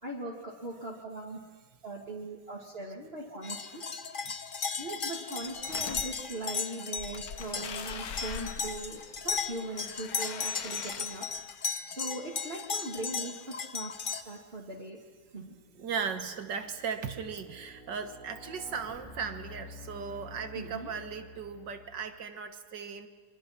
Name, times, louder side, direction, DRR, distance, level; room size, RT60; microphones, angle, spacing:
voice 1, 0.0-1.4 1.8-3.8 4.8-11.2 11.8-13.9 14.2-15.0 15.3-15.6 20.5-20.9, right 2 dB, 30° right, -4 dB, 2.6 m, -40 dB
sound 1, 3.4-14.2, left 5 dB, 40° left, 0.8 m, -36 dB
sound 2, 5.4-6.0 7.0-11.5, left 7 dB, 55° left, 1.5 m, -43 dB
sound 3, 14.6-14.8 15.4-22.2, left 2 dB, 10° left, 3.4 m, -50 dB
voice 2, 15.8-23.1, right 6 dB, 70° right, 8 dB, 2.0 m, -37 dB
26.0 x 24.0 x 6.0 m, 1.3 s
omnidirectional pair, 2.0 m